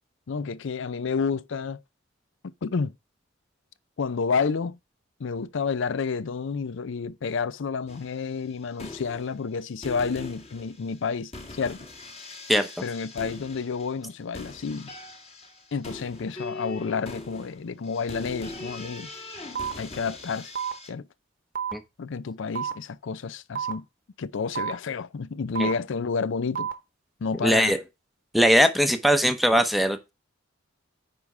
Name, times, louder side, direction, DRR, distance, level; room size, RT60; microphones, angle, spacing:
voice 1, 0.3-1.8 2.4-2.9 4.0-4.8 5.2-11.8 12.8-14.9 15.7-19.1 19.8-20.5 20.9-21.1 22.0-23.8 24.2-26.7 27.2-27.8, left 5 dB, 60° left, 0.5 m, -30 dB
sound 1, 7.9-8.2 8.7-9.6 9.8-20.9, left 2 dB, 30° left, 1.5 m, -41 dB
sound 2, 19.5-19.7 20.5-20.7 21.5-21.7 22.5-22.7 23.5-23.7 24.5-24.7 25.5-25.7 26.5-26.7 27.5-27.7, right 7 dB, 45° right, 1.0 m, -29 dB
voice 2, 27.4-27.8 28.3-30.1, equal, ahead, 0.7 m, -20 dB
9.5 x 3.5 x 5.4 m
head